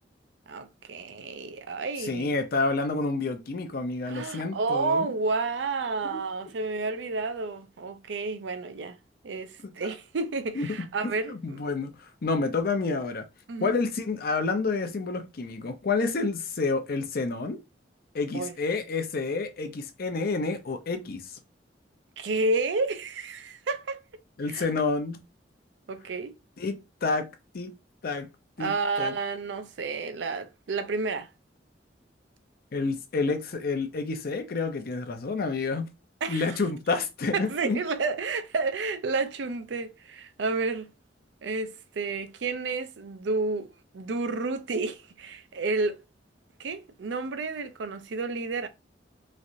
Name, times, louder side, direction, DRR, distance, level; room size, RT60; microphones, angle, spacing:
voice 1, 0.5-2.3 4.1-9.0 9.2-11.6 13.5-13.7 18.3-18.5 22.2-24.0 24.5-24.7 25.9-26.3 28.6-31.3 36.2-36.6 37.3-40.9 41.4-43.7 43.9-46.0 46.6-48.7, right 3 dB, 80° right, 0.5 m, -30 dB
voice 2, 2.0-5.1 6.1-6.2 9.6-9.9 10.6-11.9 12.2-13.3 13.6-17.6 18.1-21.2 24.4-25.2 26.6-27.3 27.5-27.7 28.0-28.3 28.6-28.7 29.0-29.1 32.7-35.9 36.3-37.8, left 3 dB, 55° left, 0.5 m, -29 dB
3.1 x 2.5 x 2.6 m
head